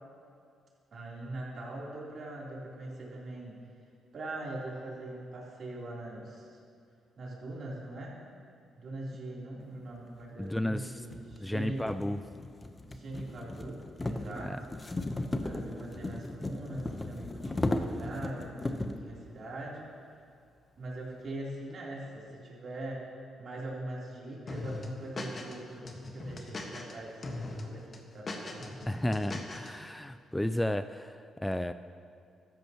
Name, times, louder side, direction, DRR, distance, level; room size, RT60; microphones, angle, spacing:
voice 1, 0.9-3.6 4.1-6.5 7.2-8.2 8.8-11.8 12.8-14.7 15.4-19.9 20.8-23.1 23.4-29.1, right 2 dB, 60° right, -5 dB, 3.6 m, -42 dB
sound 1, 10.2-10.3 11.0-19.1, left 2 dB, 25° left, 0.9 m, -36 dB
voice 2, 10.4-11.1 11.4-12.2 14.4-14.6 28.9-31.7, left 1 dB, 10° left, 11 dB, 0.4 m, -33 dB
sound 2, 24.5-25.5 25.8-26.9 27.2-27.6 27.9-29.7, left 2 dB, 40° left, 1.6 m, -39 dB
15.0 x 13.5 x 3.1 m, 2.3 s
cardioid pair, 70°, 0 cm